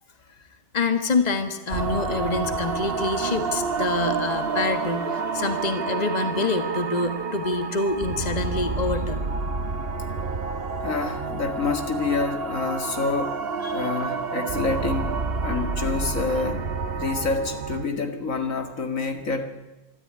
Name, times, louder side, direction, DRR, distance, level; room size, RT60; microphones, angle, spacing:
voice 1, 0.7-9.3 13.6-13.9, left 3 dB, 30° left, 8 dB, 1.7 m, -26 dB
sound 1, 1.7-17.9, right 4 dB, 50° right, 1.3 m, -29 dB
voice 2, 10.8-13.4 13.7-16.7 17.0-19.4, left 4 dB, 85° left, 6 dB, 2.5 m, -27 dB
24.5 x 13.0 x 9.6 m, 1.1 s
omnidirectional pair, 1.4 m